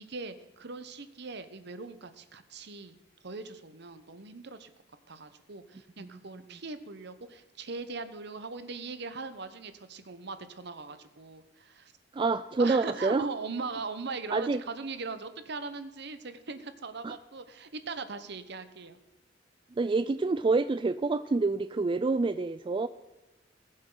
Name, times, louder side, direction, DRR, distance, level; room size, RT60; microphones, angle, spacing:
voice 1, 0.0-3.0 3.2-4.7 5.1-11.9 12.6-19.0, right 4 dB, 60° right, 11 dB, 1.0 m, -40 dB
voice 2, 12.1-13.3 14.3-14.6 17.0-17.1 19.8-22.9, right 3 dB, 25° right, 12 dB, 0.3 m, -27 dB
20.0 x 7.6 x 3.9 m, 1.1 s
head